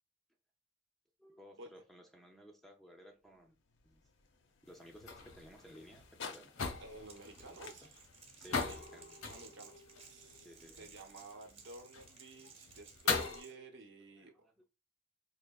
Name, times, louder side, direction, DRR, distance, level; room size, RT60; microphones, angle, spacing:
voice 1, 1.2-3.6 3.8-4.1 4.7-6.5 7.4-7.9 8.4-9.2 10.4-10.9 13.1-13.7 14.2-14.6, equal, ahead, 0.5 m, -57 dB
sound 1, 3.2-11.5, left 5 dB, 60° left, 0.6 m, -56 dB
sound 2, 4.7-13.4, left 4 dB, 90° left, 0.9 m, -41 dB
voice 2, 6.8-8.0 8.4-8.8 9.2-14.3, right 2 dB, 60° right, 0.8 m, -53 dB
Crackle, 7.0-13.5, right 5 dB, 30° right, 1.0 m, -58 dB
4.6 x 2.8 x 2.3 m
head